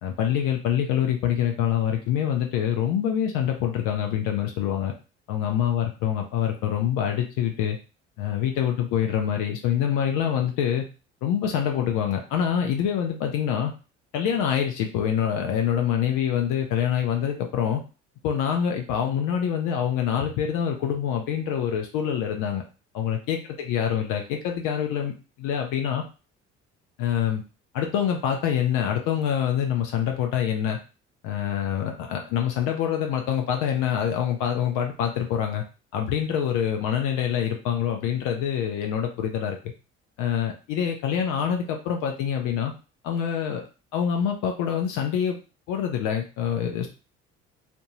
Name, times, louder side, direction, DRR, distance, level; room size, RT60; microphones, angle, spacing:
voice 1, 0.0-4.9 5.3-7.8 8.2-10.8 11.2-13.7 14.1-17.8 18.2-22.6 22.9-25.1 25.4-26.0 27.0-27.4 27.7-30.8 31.2-35.6 35.9-39.6 40.2-42.7 43.0-43.6 43.9-45.4 45.7-46.9, left 9 dB, 60° left, 3 dB, 0.6 m, -25 dB
2.7 x 2.2 x 2.9 m, 0.33 s
hypercardioid pair, 55°, 35 cm